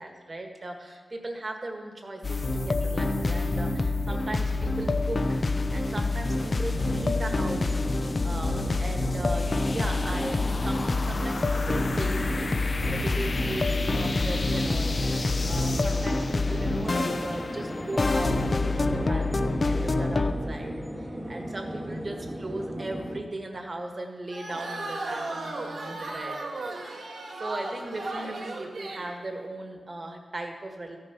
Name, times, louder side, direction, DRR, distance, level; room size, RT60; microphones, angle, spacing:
voice 1, 0.0-5.4 5.7-26.4 26.8-27.0 27.4-31.0, right 2 dB, 30° right, 3 dB, 1.5 m, -38 dB
sound 1, 2.2-20.3, left 2 dB, 35° left, 0.6 m, -27 dB
sound 2, 6.3-23.2, right 1 dB, 10° right, 1.1 m, -37 dB
sound 3, 24.3-29.2, right 2 dB, 80° right, 1.8 m, -35 dB
14.5 x 9.9 x 6.0 m, 1.5 s
wide cardioid pair, 175°, 0 cm